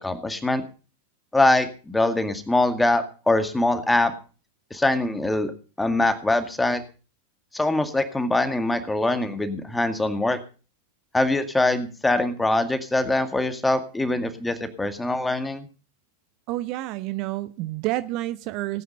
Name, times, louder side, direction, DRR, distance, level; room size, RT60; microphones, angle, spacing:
voice 1, 0.0-0.6 1.3-4.1 4.7-5.5 5.8-6.8 7.5-10.4 11.1-15.7, left 2 dB, 5° left, 2.1 m, -23 dB
voice 2, 16.5-18.8, right 17 dB, 40° right, 0.8 m, -29 dB
18.5 x 9.3 x 5.4 m
figure-of-eight pair, 90°, 0 cm